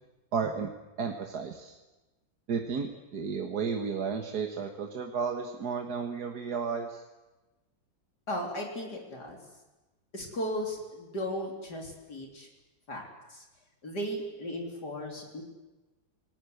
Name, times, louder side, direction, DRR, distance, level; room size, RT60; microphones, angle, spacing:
voice 1, 0.3-0.7 1.0-1.8 2.5-7.0, right 6 dB, 55° right, 4 dB, 1.9 m, -33 dB
voice 2, 8.3-9.4 10.1-12.5 12.9-13.0 13.3-13.5 13.8-15.4, equal, 55° left, 1 dB, 4.1 m, -36 dB
29.5 x 19.5 x 8.1 m, 1.1 s
omnidirectional pair, 2.1 m